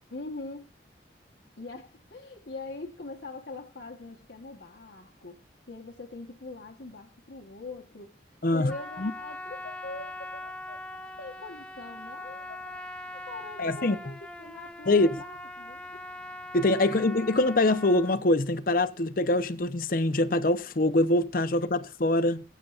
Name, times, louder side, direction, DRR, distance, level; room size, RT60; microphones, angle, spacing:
voice 1, 0.1-0.7 1.6-5.4 5.7-16.0, left 3 dB, 70° left, 1.2 m, -43 dB
voice 2, 8.4-9.1 13.6-14.0 14.9-15.1 16.5-22.4, left 2 dB, 50° left, 0.7 m, -24 dB
Trumpet, 8.7-18.2, left 1 dB, 5° left, 0.6 m, -41 dB
25.0 x 8.4 x 2.4 m
head